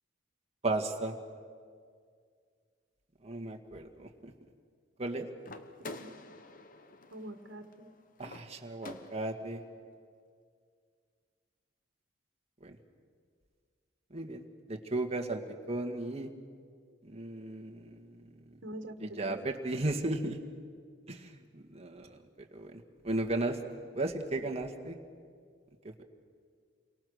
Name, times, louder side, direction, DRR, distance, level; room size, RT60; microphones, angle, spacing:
voice 1, 0.6-1.2 3.2-4.3 5.0-5.3 8.2-9.6 12.6-12.7 14.1-15.4 15.7-16.3 17.0-18.3 19.0-20.4 21.1-23.6 23.9-25.0, right 2 dB, 35° right, 3 dB, 1.8 m, -35 dB
sound 1, 5.4-9.5, left 2 dB, 45° left, 1.1 m, -48 dB
voice 2, 7.1-8.0 18.6-19.4 24.3-24.4, right 1 dB, 75° right, 7 dB, 1.6 m, -45 dB
29.0 x 24.0 x 6.5 m, 2.1 s
head